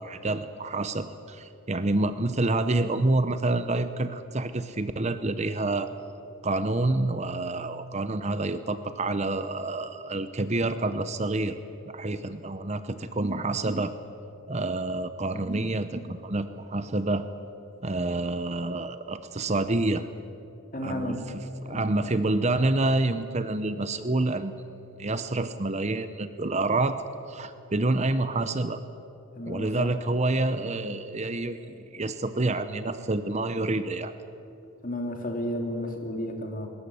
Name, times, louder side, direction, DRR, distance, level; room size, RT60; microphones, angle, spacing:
voice 1, 0.0-5.9 6.4-11.6 11.9-13.9 14.5-17.3 17.8-20.1 20.8-21.2 21.6-24.6 25.0-28.8 29.5-34.1, right 2 dB, 30° right, 11 dB, 0.7 m, -28 dB
voice 2, 20.7-21.3 21.7-21.9 29.4-29.9 34.8-36.7, left 1 dB, 35° left, 4 dB, 2.8 m, -32 dB
20.5 x 18.5 x 9.9 m, 2.9 s
head